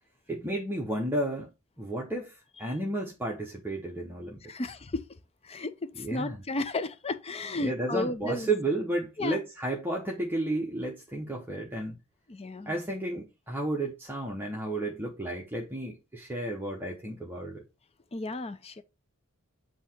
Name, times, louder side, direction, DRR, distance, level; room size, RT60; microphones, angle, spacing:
voice 1, 0.3-1.5 1.8-4.4 6.0-6.4 7.6-12.0 12.7-17.6, right 1 dB, 10° right, 0.9 m, -32 dB
voice 2, 4.5-5.0 5.4-8.6 9.2-9.4 12.3-12.8 18.1-18.8, left 2 dB, 25° left, 0.6 m, -33 dB
7.9 x 2.9 x 4.3 m
head